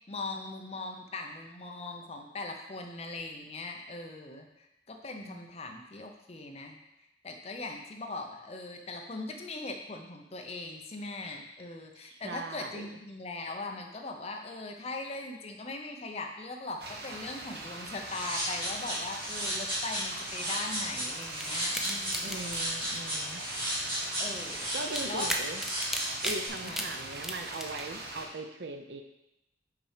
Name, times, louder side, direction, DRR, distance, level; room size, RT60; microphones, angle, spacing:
voice 1, 0.1-6.8 7.2-22.5 24.2-24.7 25.0-25.4 26.6-26.8, left 2 dB, 35° left, 3 dB, 0.7 m, -40 dB
voice 2, 12.0-12.8 22.2-23.4 24.7-25.6 26.2-29.0, right 2 dB, 75° right, 6 dB, 0.6 m, -40 dB
sound 1, 16.8-28.3, right 2 dB, 60° right, 1.0 m, -43 dB
sound 2, 18.1-26.5, equal, 30° right, 2.7 m, -34 dB
sound 3, 21.1-27.8, equal, ahead, 0.5 m, -37 dB
6.0 x 4.3 x 5.0 m, 0.87 s
head